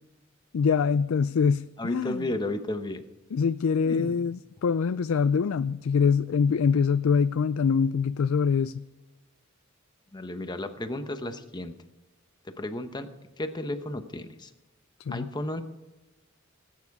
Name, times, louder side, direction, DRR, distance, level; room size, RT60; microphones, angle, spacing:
voice 1, 0.5-2.2 3.3-8.8 15.1-15.3, left 6 dB, 75° left, 14 dB, 0.4 m, -24 dB
voice 2, 1.8-3.0 3.8-4.1 10.1-11.7 12.4-13.1 13.4-14.5 15.1-15.6, left 1 dB, 20° left, 8 dB, 0.9 m, -33 dB
19.0 x 9.5 x 4.8 m, 1.1 s
head